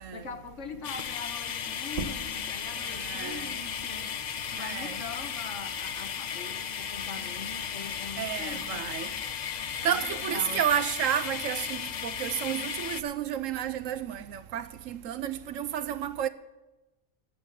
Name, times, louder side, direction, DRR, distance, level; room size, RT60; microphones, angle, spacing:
voice 1, 0.0-4.1 4.5-8.9 10.0-10.6, left 5 dB, 60° left, 1.4 m, -42 dB
sound 1, 0.8-13.0, left 8 dB, 80° left, 0.4 m, -35 dB
sound 2, 1.9-7.1 7.5-9.3, right 3 dB, 35° right, 0.7 m, -45 dB
voice 2, 2.9-3.5 4.6-5.0 8.2-9.1 9.8-16.3, right 10 dB, 75° right, 1.0 m, -31 dB
12.0 x 8.1 x 9.1 m
omnidirectional pair, 1.4 m